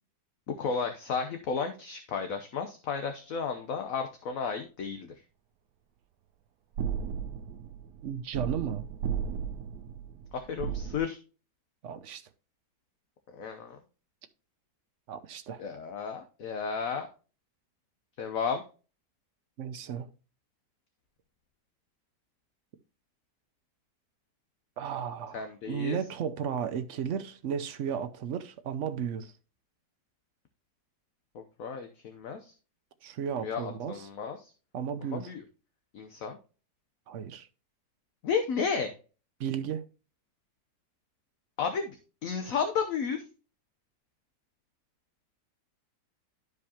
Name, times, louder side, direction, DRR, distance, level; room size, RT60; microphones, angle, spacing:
voice 1, 0.5-5.1 10.3-11.2 13.3-13.8 15.6-17.1 18.2-18.6 25.3-26.0 31.3-32.5 33.4-34.5 35.1-35.4 35.9-36.4 38.2-38.9 41.6-43.3, left 6 dB, 60° left, 1.1 m, -33 dB
sound 1, 6.8-11.0, right 7 dB, 75° right, 1.1 m, -35 dB
voice 2, 8.0-8.8 11.8-12.2 15.1-15.6 19.6-20.1 24.8-29.3 33.0-34.1 34.7-35.3 37.1-37.5 39.4-39.9, right 8 dB, 60° right, 0.8 m, -34 dB
12.0 x 4.9 x 2.8 m
omnidirectional pair, 1.8 m